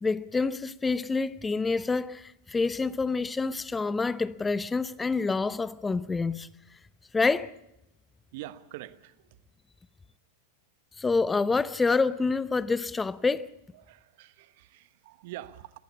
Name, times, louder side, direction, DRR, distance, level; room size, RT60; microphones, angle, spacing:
voice 1, 0.0-6.5 7.1-7.5 11.0-13.5, left 4 dB, 15° left, 0.7 m, -27 dB
voice 2, 8.3-9.4 13.7-15.8, right 15 dB, 60° right, 1.2 m, -45 dB
21.0 x 15.0 x 8.5 m
hypercardioid pair, 95°, 0 cm